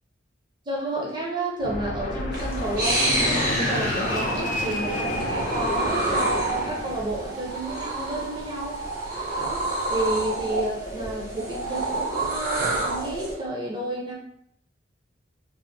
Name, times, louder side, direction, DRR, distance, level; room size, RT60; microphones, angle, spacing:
voice 1, 0.7-8.8 9.4-14.1, right 2 dB, 25° right, -3 dB, 0.5 m, -31 dB
Fixed-wing aircraft airplane, 1.6-7.2, left 2 dB, 40° left, 0.3 m, -30 dB
sound 1, 2.3-13.3, right 2 dB, 50° right, 0.9 m, -28 dB
3.3 x 2.0 x 2.6 m, 0.71 s
head